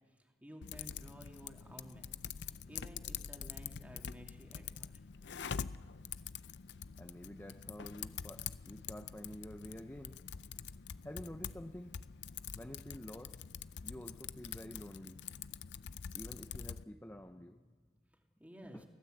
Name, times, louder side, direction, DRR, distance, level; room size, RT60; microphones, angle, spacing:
voice 1, 0.1-2.1 2.4-5.0 18.4-18.8, equal, 10° right, 1 dB, 2.7 m, -54 dB
Typing, 0.6-16.8, left 7 dB, 80° left, 0.5 m, -45 dB
voice 2, 7.0-10.2 11.0-11.9 12.5-13.4 13.8-15.2 16.1-17.7 18.7-18.8, left 1 dB, 10° left, 5 dB, 0.7 m, -49 dB
24.0 x 16.5 x 7.9 m, 1.4 s
head